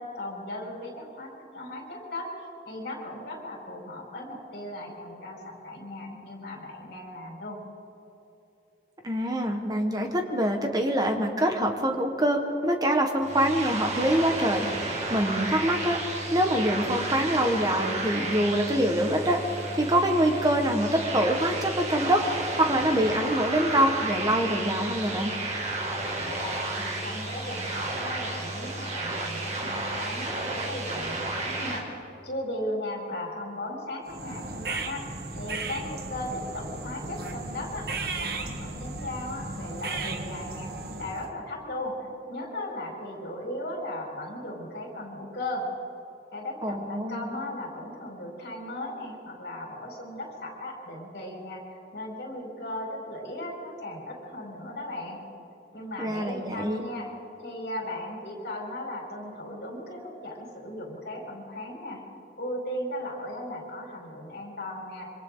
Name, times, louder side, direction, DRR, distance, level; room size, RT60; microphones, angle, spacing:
voice 1, 0.0-7.6 26.3-31.9 32.2-40.7 41.0-45.7 46.3-55.2 55.7-57.1 57.4-62.0 62.4-65.1, left 1 dB, 60° left, -1 dB, 5.1 m, -37 dB
voice 2, 9.0-14.7 15.1-19.4 19.7-22.2 22.6-25.3 46.6-47.3 56.0-56.8, right 1 dB, 20° right, 3 dB, 1.6 m, -25 dB
sound 1, 13.2-31.8, right 2 dB, 35° right, 2.5 m, -32 dB
sound 2, 34.1-41.3, right 3 dB, 55° right, 1.5 m, -35 dB
26.5 x 25.5 x 4.0 m, 2.9 s
head